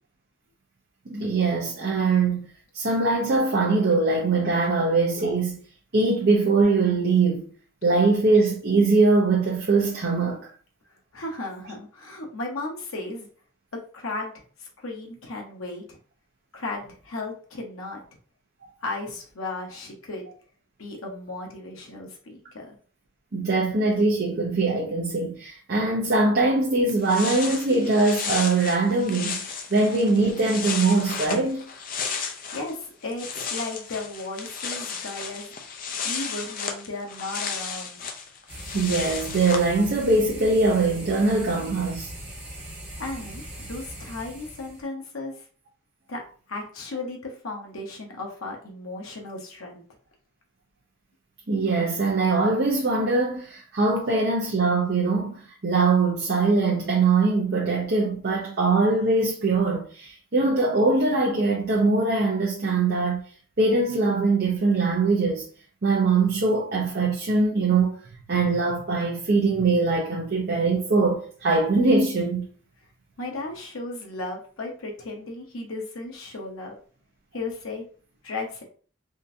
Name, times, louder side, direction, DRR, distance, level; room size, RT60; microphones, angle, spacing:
voice 1, 1.1-2.5 2.7-5.6 5.9-7.5 7.8-10.4 23.3-31.6 38.7-42.1 51.5-63.3 63.6-65.4 65.8-68.0 68.3-72.5, right 3 dB, 50° right, 0.6 m, -22 dB
voice 2, 11.1-13.3 13.9-14.3 14.6-16.0 16.5-18.0 18.8-20.3 20.8-22.8 32.5-35.5 36.0-38.1 43.0-45.3 46.1-46.2 46.5-49.8 73.2-76.8 77.3-77.8 78.2-78.6, left 2 dB, 90° left, 0.8 m, -35 dB
sound 1, 26.6-26.7 26.9-32.7 33.0-39.7, left 6 dB, 40° left, 0.4 m, -33 dB
sound 2, 38.5-44.8, right 1 dB, 10° right, 1.3 m, -40 dB
3.7 x 2.6 x 2.7 m
head